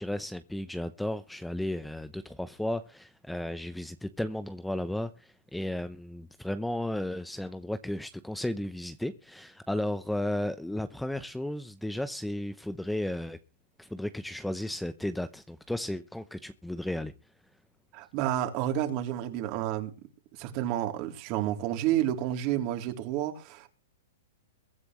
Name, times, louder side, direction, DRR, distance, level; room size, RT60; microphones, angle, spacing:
voice 1, 0.0-13.4 13.8-17.1, left 1 dB, 5° left, 0.8 m, -34 dB
voice 2, 17.9-19.9 20.4-23.7, right 12 dB, 40° right, 3.3 m, -30 dB
22.5 x 9.7 x 3.2 m
hypercardioid pair, 130°, 0 cm